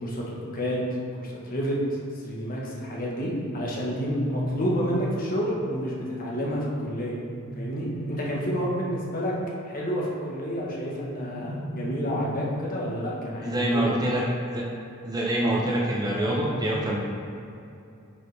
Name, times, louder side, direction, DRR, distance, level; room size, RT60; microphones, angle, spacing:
voice 1, 0.0-0.8 1.2-2.0 2.2-7.2 7.5-9.3 9.6-13.9, equal, 40° left, -4 dB, 1.3 m, -29 dB
sound 1, 3.5-5.5 7.2-9.2 10.9-12.9, equal, 65° left, 1.2 m, -35 dB
voice 2, 13.4-14.2 14.5-14.6 15.0-17.0, right 1 dB, 15° right, -4 dB, 0.8 m, -25 dB
8.9 x 4.9 x 3.4 m, 2.6 s
head